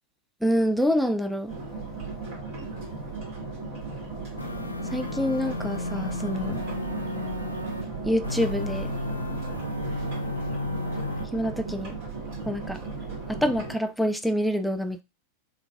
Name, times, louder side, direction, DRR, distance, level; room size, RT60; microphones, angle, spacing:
voice 1, 0.4-1.5 4.8-6.6 8.0-8.9 11.3-12.0 12.5-12.8 13.3-15.0, equal, ahead, 0.3 m, -26 dB
sound 1, 1.5-13.7, right 4 dB, 45° right, 2.0 m, -36 dB
sound 2, 4.4-7.8 8.2-11.2, left 1 dB, 85° left, 0.5 m, -33 dB
5.6 x 2.4 x 2.3 m
figure-of-eight pair, 90°, 0 cm